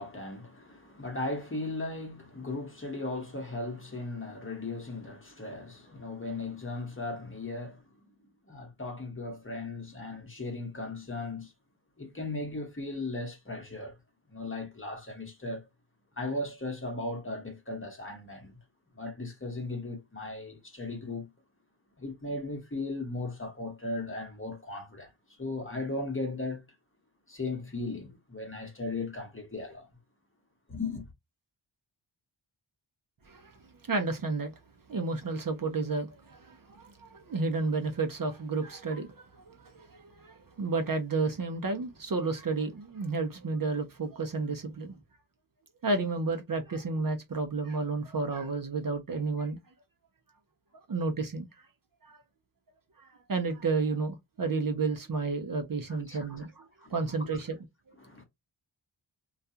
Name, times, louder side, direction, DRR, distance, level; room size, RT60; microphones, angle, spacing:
voice 1, 0.0-7.8 8.5-11.5 12.0-13.9 14.3-15.7 16.2-18.6 19.0-21.3 22.0-26.6 27.3-29.9 30.7-31.0 55.9-56.5 56.8-57.3 58.0-58.2, left 2 dB, 25° left, 1.0 m, -37 dB
voice 2, 33.9-34.5 34.9-44.9 45.8-49.6 50.9-51.5 52.0-52.2 53.0-57.6, right 3 dB, 45° right, 0.6 m, -31 dB
2.4 x 2.2 x 2.6 m
wide cardioid pair, 90°, 48 cm